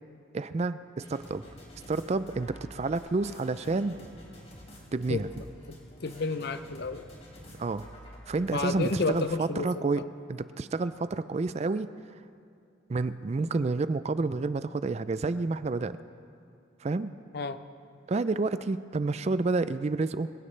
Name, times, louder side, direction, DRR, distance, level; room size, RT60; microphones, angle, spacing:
voice 1, 0.3-1.4 1.9-4.0 4.9-5.3 7.6-7.9 8.3-11.9 12.9-16.0 16.8-17.1 18.1-20.3, right 3 dB, 35° right, 13 dB, 0.4 m, -29 dB
sound 1, 1.0-9.2, equal, 30° left, 3.3 m, -49 dB
voice 2, 5.7-7.0 8.5-9.7 17.3-17.6, left 3 dB, 55° left, 11 dB, 0.6 m, -31 dB
25.5 x 16.0 x 3.3 m, 2.4 s
head